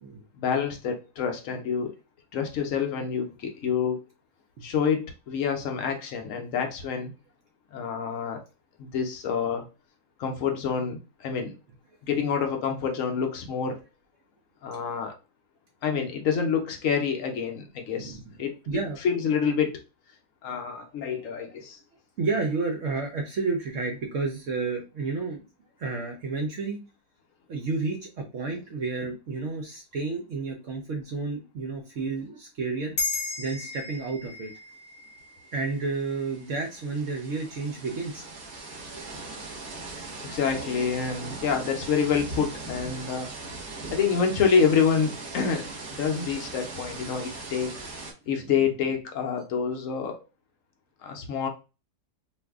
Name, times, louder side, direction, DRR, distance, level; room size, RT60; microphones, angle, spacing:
voice 1, 0.4-1.9 2.3-4.0 4.6-7.1 7.7-8.4 8.8-9.6 10.2-11.5 12.0-13.8 14.6-15.2 15.8-19.8 20.4-21.8 40.2-43.3 43.9-47.7 48.3-50.2 51.0-51.5, left 6 dB, 65° left, 4 dB, 0.8 m, -27 dB
voice 2, 18.7-19.0 22.2-25.4 25.8-26.8 27.5-33.0 33.4-34.5 35.5-38.3 38.9-39.0 48.4-48.6, right 4 dB, 65° right, 2 dB, 0.8 m, -31 dB
sound 1, 33.0-37.7, left 3 dB, 30° left, 0.9 m, -36 dB
sound 2, 35.2-35.3 35.5-48.1, right 3 dB, 40° right, 1.1 m, -40 dB
2.6 x 2.5 x 3.4 m, 0.30 s
omnidirectional pair, 1.7 m